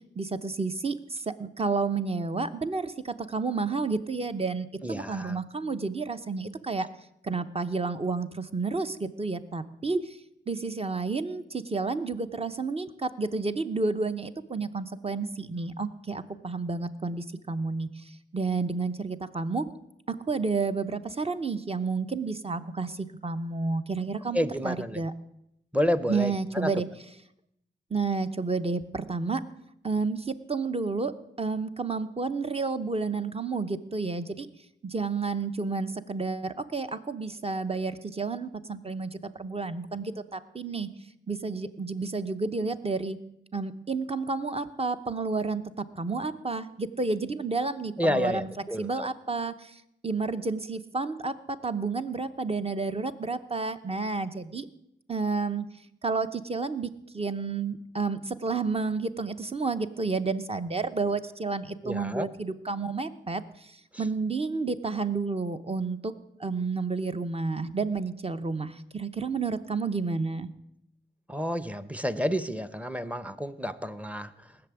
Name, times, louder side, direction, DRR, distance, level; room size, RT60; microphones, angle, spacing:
voice 1, 0.2-6.9 7.2-10.2 10.5-18.0 18.3-19.7 20.3-25.1 26.1-26.9 27.9-29.4 29.8-31.1 31.4-34.5 34.8-40.9 41.3-43.2 43.5-48.5 48.8-54.7 55.1-55.7 56.0-66.1 66.4-70.5, right 4 dB, 30° right, 10 dB, 1.0 m, -31 dB
voice 2, 4.8-5.4 24.3-25.0 25.7-26.7 48.0-49.1 61.8-62.3 71.3-74.5, equal, 5° right, 14 dB, 0.8 m, -30 dB
19.0 x 7.0 x 9.5 m, 0.80 s
wide cardioid pair, 105°, 20 cm